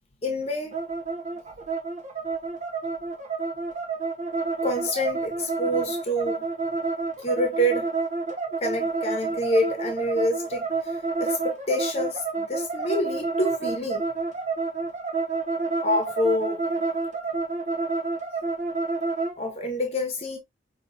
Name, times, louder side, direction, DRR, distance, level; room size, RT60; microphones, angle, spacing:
voice 1, 0.2-0.8 4.6-6.4 7.2-7.9 8.6-14.0 15.8-16.6 19.4-20.4, left 1 dB, 35° left, 1.0 m, -27 dB
sound 1, 0.7-19.4, right 4 dB, 40° right, 1.0 m, -29 dB
5.5 x 2.8 x 2.7 m
head